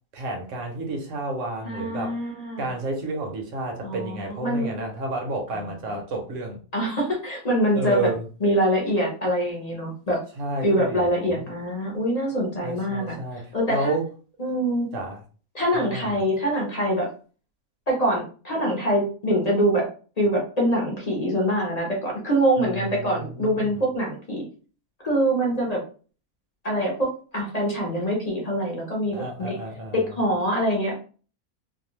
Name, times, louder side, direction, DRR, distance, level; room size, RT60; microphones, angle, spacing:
voice 1, 0.1-2.2 2.6-6.6 7.7-8.3 10.4-11.5 12.6-14.1 14.9-15.2 15.7-16.1 22.6-23.8 29.1-30.2, right 2 dB, 65° right, 2 dB, 1.0 m, -31 dB
voice 2, 1.6-2.7 3.8-4.7 5.5-5.6 6.7-8.1 8.4-10.2 10.6-13.2 13.5-14.0 14.4-14.9 15.5-17.1 17.9-19.8 20.2-24.4 25.0-25.8 26.6-27.1 27.3-29.6 30.2-30.9, equal, 35° left, -2 dB, 0.7 m, -24 dB
2.6 x 2.3 x 3.0 m, 0.39 s
omnidirectional pair, 1.6 m